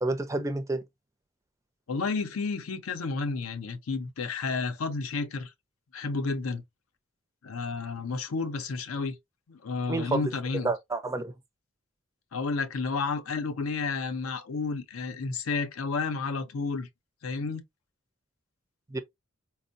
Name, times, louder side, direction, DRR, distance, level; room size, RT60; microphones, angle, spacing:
voice 1, 0.0-0.8 9.9-10.3 10.6-11.3 18.9-19.0, right 2 dB, 15° right, 0.4 m, -29 dB
voice 2, 1.9-5.5 5.9-6.6 7.4-9.2 9.5-10.7 12.3-16.9 17.2-17.6, left 4 dB, 85° left, 0.6 m, -31 dB
4.3 x 2.0 x 2.5 m
head